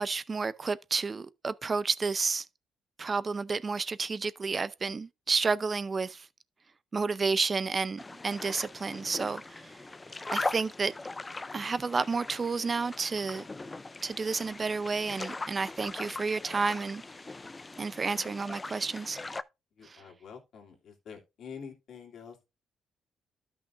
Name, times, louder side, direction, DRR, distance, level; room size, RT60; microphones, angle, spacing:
voice 1, 0.0-2.5 3.0-6.3 6.9-9.8 10.3-10.9 11.5-13.4 14.0-17.0 17.8-19.2 19.8-20.0, right 4 dB, 35° right, 0.6 m, -31 dB
sound 1, 8.0-19.4, left 3 dB, 20° left, 0.4 m, -40 dB
voice 2, 19.8-22.4, left 6 dB, 65° left, 2.6 m, -47 dB
13.0 x 5.8 x 2.5 m
cardioid pair, 90°, 0 cm